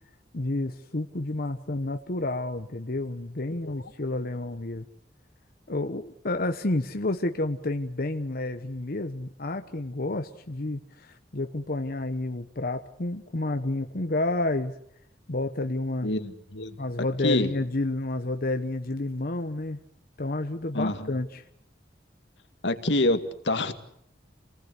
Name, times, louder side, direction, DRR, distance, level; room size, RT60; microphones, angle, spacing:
voice 1, 0.3-4.9 5.7-14.8 15.3-16.1 16.8-19.8 20.2-21.4, left 2 dB, 55° left, 6 dB, 1.1 m, -30 dB
voice 2, 16.0-16.8 17.2-17.5 20.7-21.1 22.6-23.7, left 2 dB, 85° left, 8 dB, 2.0 m, -26 dB
28.0 x 19.5 x 8.3 m, 0.73 s
head